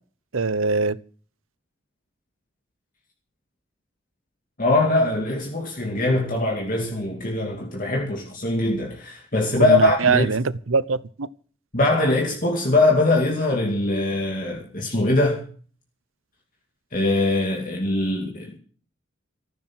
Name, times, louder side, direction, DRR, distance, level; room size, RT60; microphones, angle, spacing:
voice 1, 0.3-1.0 9.6-11.3, right 4 dB, 85° right, 0.8 m, -22 dB
voice 2, 4.6-10.3 11.7-15.4 16.9-18.5, left 2 dB, 40° left, 2.5 m, -22 dB
14.5 x 12.0 x 6.1 m
head